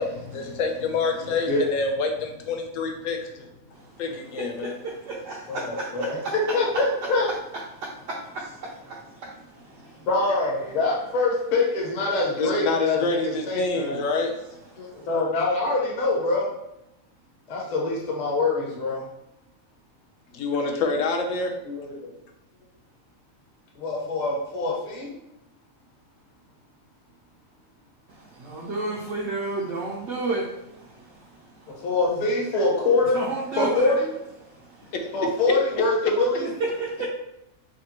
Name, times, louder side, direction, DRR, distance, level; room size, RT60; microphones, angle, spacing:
voice 1, 0.0-3.5 4.0-4.8 12.4-14.4 20.3-21.5 34.9-35.1, left 3 dB, 70° left, 4 dB, 0.9 m, -27 dB
voice 2, 4.4-6.8 7.3-7.6 8.1-10.1 14.8-15.1 28.1-32.3 33.1-34.0 34.4-34.9 36.4-37.1, right 3 dB, 65° right, -4 dB, 0.8 m, -33 dB
voice 3, 5.5-7.3 9.9-14.0 14.8-16.5 17.5-19.0 21.7-22.1 23.7-25.1 31.8-33.2 33.6-34.1 35.1-36.5, left 3 dB, 35° left, -2 dB, 0.8 m, -24 dB
4.8 x 2.2 x 2.9 m, 0.86 s
omnidirectional pair, 1.5 m